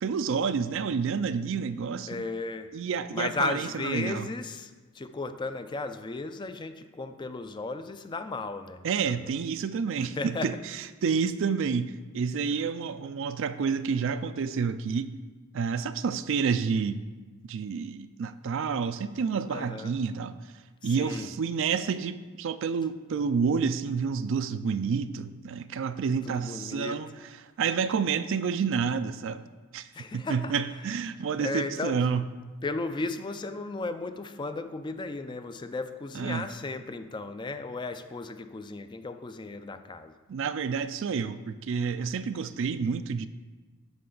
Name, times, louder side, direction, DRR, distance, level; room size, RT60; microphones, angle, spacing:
voice 1, 0.0-2.2 2.7-4.3 8.8-10.5 11.0-15.2 15.5-17.1 17.5-20.4 20.8-27.1 27.6-29.4 29.7-29.9 30.1-32.3 36.1-36.5 40.3-43.3, right 6 dB, 60° right, 13 dB, 0.4 m, -29 dB
voice 2, 2.1-2.7 3.1-9.3 10.0-10.6 12.5-12.7 19.5-19.9 20.8-21.3 26.2-27.0 29.9-30.5 31.4-32.0 32.6-40.1, left 3 dB, 20° left, 9 dB, 0.4 m, -35 dB
12.5 x 5.2 x 3.9 m, 1.3 s
head